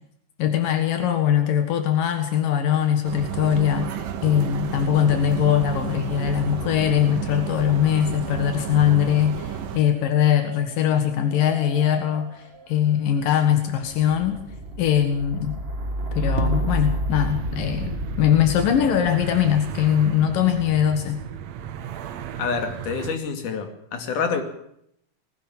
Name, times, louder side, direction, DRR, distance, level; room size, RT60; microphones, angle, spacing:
voice 1, 0.4-14.4 14.8-15.6 16.1-21.2, left 10 dB, 85° left, 7 dB, 3.3 m, -21 dB
sound 1, 3.0-9.8, right 9 dB, 90° right, 3.1 m, -31 dB
sound 2, 4.3-5.6 5.9-20.9 21.7-22.3, right 1 dB, 30° right, 1.0 m, -33 dB
sound 3, 17.1-23.2, right 9 dB, 65° right, 2.1 m, -36 dB
voice 2, 22.4-24.4, left 5 dB, 70° left, 6 dB, 3.9 m, -27 dB
20.5 x 17.5 x 7.3 m, 0.73 s
omnidirectional pair, 3.8 m